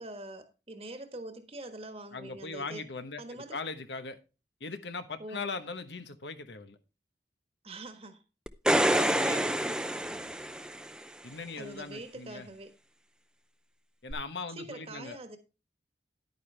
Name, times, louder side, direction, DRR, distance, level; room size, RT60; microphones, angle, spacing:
voice 1, 0.0-2.8 3.2-3.6 5.2-5.4 7.6-8.2 11.6-12.7 14.5-15.4, right 2 dB, 35° right, 1.4 m, -44 dB
voice 2, 2.1-4.2 4.6-6.8 8.8-10.5 11.2-12.5 14.0-15.2, left 4 dB, 80° left, 1.1 m, -40 dB
sound 1, 8.5-11.0 14.1-14.2, right 1 dB, 5° right, 0.5 m, -27 dB
10.5 x 9.4 x 3.3 m
head